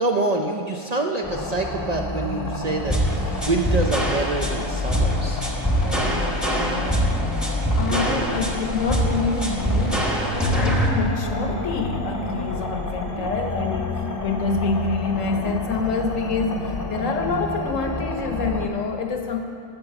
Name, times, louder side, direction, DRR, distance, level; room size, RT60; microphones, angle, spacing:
voice 1, 0.0-5.4 7.8-8.4 13.1-13.2 17.9-18.1, right 2 dB, 45° right, 1 dB, 0.5 m, -27 dB
sound 1, 1.2-18.7, left 1 dB, 20° left, 0.7 m, -29 dB
sound 2, 2.9-10.9, right 1 dB, ahead, 1.0 m, -24 dB
voice 2, 5.8-7.4 7.8-19.4, left 4 dB, 85° left, 4 dB, 1.3 m, -27 dB
9.0 x 7.2 x 6.8 m, 2.3 s
omnidirectional pair, 1.3 m